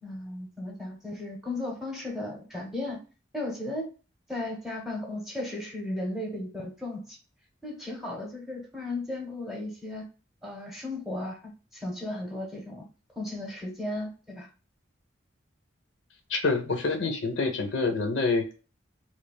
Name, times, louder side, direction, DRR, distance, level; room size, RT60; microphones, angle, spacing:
voice 1, 0.0-3.0 3.3-3.9 4.3-7.2 7.6-10.1 10.4-12.8 13.2-14.5, left 2 dB, ahead, 0 dB, 0.9 m, -35 dB
voice 2, 16.3-18.6, left 3 dB, 70° left, 5 dB, 0.7 m, -27 dB
3.2 x 2.3 x 2.2 m, 0.34 s
head